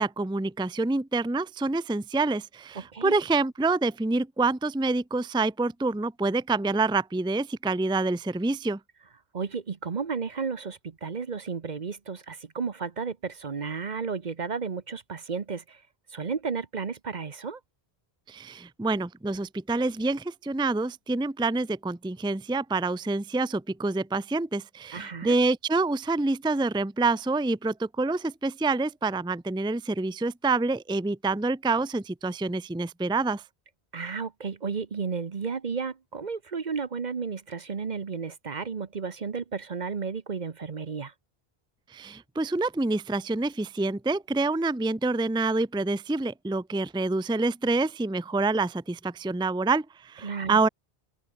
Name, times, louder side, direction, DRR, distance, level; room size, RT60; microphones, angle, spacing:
voice 1, 0.0-8.8 18.3-33.4 41.9-50.7, right 3 dB, 5° right, 0.6 m, -27 dB
voice 2, 2.7-3.1 9.3-15.8 16.1-17.6 24.9-25.4 33.9-41.1 50.2-50.6, right 5 dB, 45° right, 1.0 m, -33 dB
open air
omnidirectional pair, 1.1 m